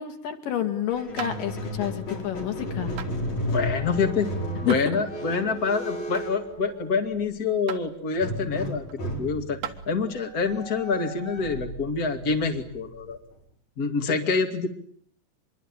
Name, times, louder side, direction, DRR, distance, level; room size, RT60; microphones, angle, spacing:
voice 1, 0.0-2.9 4.7-5.0, left 10 dB, 90° left, 7 dB, 3.8 m, -29 dB
Squeak, 0.9-7.3 8.2-13.4, left 1 dB, 60° left, 6.2 m, -34 dB
sound 1, 1.2-1.4 3.0-3.1 4.7-4.9 6.2-6.4 7.7-7.9 8.9-9.0 9.6-9.8 11.3-11.4, right 10 dB, 65° right, 2.8 m, -36 dB
voice 2, 3.5-4.3 4.6-8.8 9.2-9.6 9.9-13.2 13.8-14.7, left 4 dB, 30° left, 5 dB, 2.5 m, -26 dB
25.0 x 23.0 x 8.9 m, 0.62 s
omnidirectional pair, 3.8 m